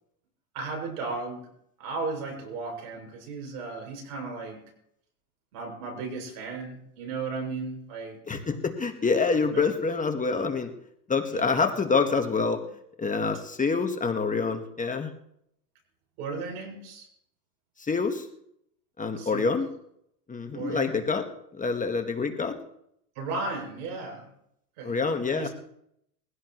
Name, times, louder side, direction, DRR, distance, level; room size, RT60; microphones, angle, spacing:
voice 1, 0.5-1.4 1.8-4.6 5.5-8.2 9.5-9.6 11.3-11.6 16.2-17.1 19.2-19.5 20.5-21.0 23.2-24.3 24.8-25.0 25.4-25.5, right 3 dB, 70° right, 3 dB, 6.9 m, -35 dB
voice 2, 8.3-10.7 11.1-12.6 13.0-15.1 17.8-18.3 19.0-19.7 20.3-21.2 21.5-22.6 24.8-25.5, left 4 dB, 15° left, 6 dB, 1.5 m, -26 dB
22.5 x 16.0 x 3.1 m, 0.74 s
supercardioid pair, 110°, 47 cm